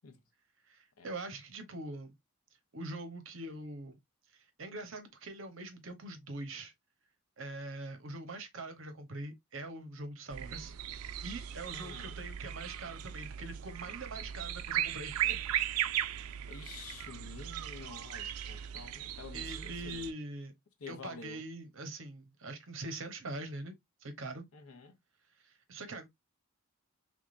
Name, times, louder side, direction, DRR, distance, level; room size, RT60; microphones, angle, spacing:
voice 1, 0.7-2.1 2.7-4.0 4.3-6.7 7.4-15.4 19.3-20.5 20.9-23.8 24.0-24.5 25.4-26.1, right 2 dB, 60° right, 0.8 m, -43 dB
sound 1, 10.3-20.1, right 11 dB, 80° right, 0.4 m, -37 dB
voice 2, 11.7-12.2 16.5-20.1 20.8-21.4 24.5-25.0, left 4 dB, 75° left, 0.8 m, -49 dB
3.6 x 3.4 x 2.5 m
head